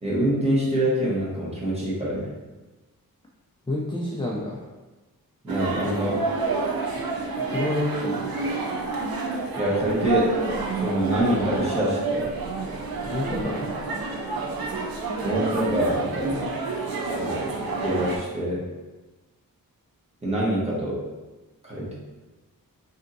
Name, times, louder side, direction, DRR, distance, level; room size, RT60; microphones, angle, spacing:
voice 1, 0.0-2.3 5.4-6.3 9.6-10.4 10.8-12.3 15.2-16.6 17.0-18.7 20.2-21.1 21.6-22.0, equal, 20° right, -7 dB, 0.9 m, -25 dB
voice 2, 3.7-4.6 7.5-8.3 13.0-13.7, left 2 dB, 15° left, -3 dB, 0.3 m, -28 dB
sound 1, 5.5-18.2, right 3 dB, 75° right, 0.6 m, -29 dB
3.4 x 2.7 x 2.6 m, 1.2 s
wide cardioid pair, 105°, 36 cm